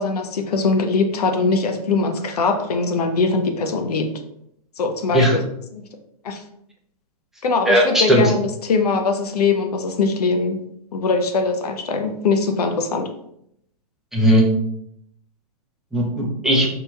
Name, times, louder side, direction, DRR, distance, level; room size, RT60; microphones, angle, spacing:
voice 1, 0.0-4.1 4.8-5.4 5.7-5.8 6.2-6.4 7.4-10.6 10.9-13.1, left 4 dB, 80° left, 6 dB, 0.5 m, -21 dB
voice 2, 7.7-8.3 14.1-14.5 15.9-16.7, equal, ahead, -4 dB, 0.6 m, -17 dB
2.8 x 2.8 x 2.3 m, 0.74 s
hypercardioid pair, 125°, 20 cm